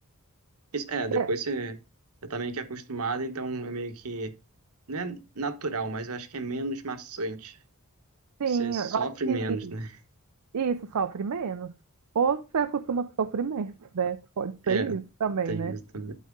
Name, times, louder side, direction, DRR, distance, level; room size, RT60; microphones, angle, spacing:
voice 1, 0.7-1.8 2.3-4.3 4.9-7.6 8.5-9.9 14.7-14.9 15.5-16.1, right 3 dB, 75° right, 1.1 m, -32 dB
voice 2, 8.4-9.7 10.5-11.7 12.1-15.7, right 6 dB, 90° right, 0.5 m, -29 dB
12.0 x 4.2 x 3.7 m
head